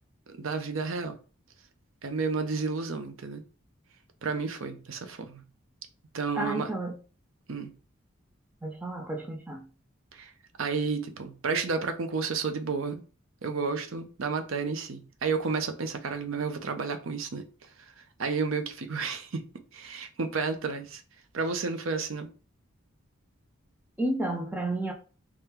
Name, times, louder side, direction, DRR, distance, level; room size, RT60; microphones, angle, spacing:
voice 1, 0.3-1.2 2.0-3.4 4.2-5.4 6.1-6.7 7.5-7.7 10.1-10.3 10.6-13.0 13.4-17.4 18.2-19.4 19.7-21.0 21.3-22.3, right 4 dB, 75° right, 0.6 m, -31 dB
voice 2, 6.4-7.0 8.6-9.7 24.0-24.9, right 1 dB, 10° right, 0.5 m, -31 dB
3.6 x 2.2 x 4.2 m
head